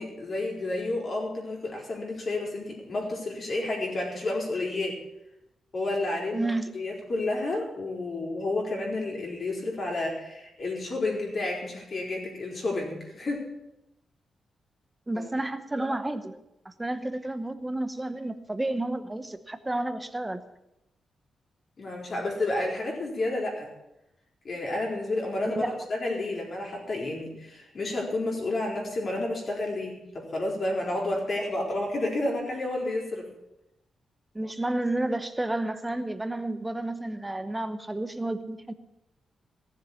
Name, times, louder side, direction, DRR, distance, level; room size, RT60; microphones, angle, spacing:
voice 1, 0.0-5.0 5.7-6.5 6.7-13.5 15.1-15.3 21.8-23.7 24.4-33.3, left 2 dB, 40° left, -1 dB, 4.3 m, -30 dB
voice 2, 6.3-6.7 15.1-16.4 16.6-20.4 25.4-25.7 34.3-38.7, right 2 dB, 10° right, 10 dB, 0.9 m, -31 dB
17.0 x 7.3 x 8.6 m, 0.88 s
wide cardioid pair, 160°, 0 cm